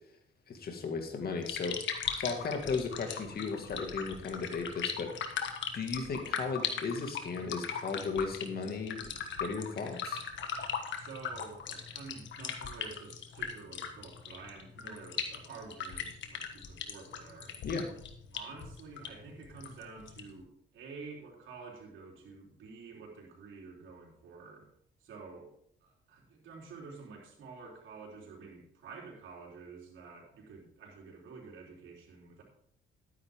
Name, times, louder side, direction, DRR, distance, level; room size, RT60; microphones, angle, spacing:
voice 1, 0.5-5.2 5.7-9.1 9.4-10.2 17.6-17.9, left 4 dB, 50° left, 3 dB, 2.1 m, -36 dB
sound 1, 1.2-20.4, left 7 dB, 70° left, 1.5 m, -39 dB
voice 2, 11.0-17.6 18.3-24.7 25.0-25.5 25.8-32.4, right 4 dB, 75° right, -3 dB, 3.9 m, -49 dB
12.0 x 9.8 x 3.7 m, 0.69 s
cardioid pair, 90°, 20 cm